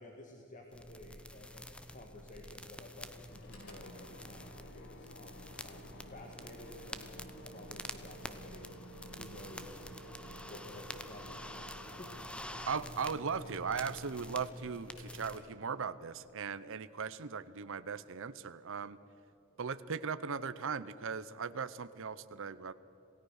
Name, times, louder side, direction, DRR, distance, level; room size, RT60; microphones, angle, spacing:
voice 1, 0.0-8.7 9.2-9.8 10.5-11.6 12.0-12.1, left 1 dB, 35° left, 2 dB, 1.9 m, -53 dB
sound 1, 0.7-15.4, left 1 dB, 5° left, 0.9 m, -48 dB
sound 2, 3.1-16.8, left 1 dB, 55° left, 1.6 m, -56 dB
Mechanical fan, 3.4-16.1, right 1 dB, 80° left, 4.2 m, -56 dB
voice 2, 12.7-19.0 19.6-22.7, right 5 dB, 65° right, 13 dB, 0.7 m, -38 dB
27.5 x 17.0 x 6.5 m, 2.9 s
head